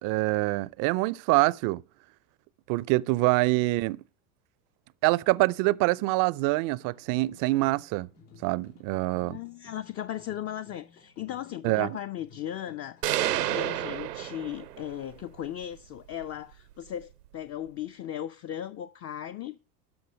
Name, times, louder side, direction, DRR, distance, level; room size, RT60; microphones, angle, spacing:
voice 1, 0.0-1.8 2.7-4.0 5.0-8.1 8.4-9.4 11.6-12.0, right 21 dB, 45° right, 0.5 m, -25 dB
sound 1, 6.8-13.6, left 5 dB, 80° left, 4.3 m, -56 dB
voice 2, 9.1-19.6, left 11 dB, 30° left, 0.6 m, -37 dB
sound 2, 13.0-15.0, right 13 dB, 85° right, 0.7 m, -29 dB
12.5 x 5.4 x 6.3 m
hypercardioid pair, 80°, 46 cm